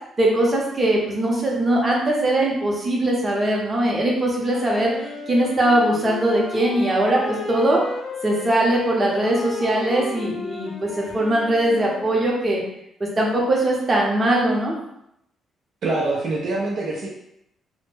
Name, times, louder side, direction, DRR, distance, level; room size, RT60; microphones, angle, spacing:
voice 1, 0.2-7.8 8.2-12.6 13.0-14.8, right 1 dB, 30° right, -3 dB, 0.7 m, -21 dB
Wind instrument woodwind instrument, 4.5-12.5, left 3 dB, 55° left, 0.5 m, -34 dB
voice 2, 15.8-17.1, right 2 dB, 65° right, -3 dB, 0.5 m, -24 dB
2.1 x 2.1 x 3.1 m, 0.79 s
cardioid pair, 90°, 0 cm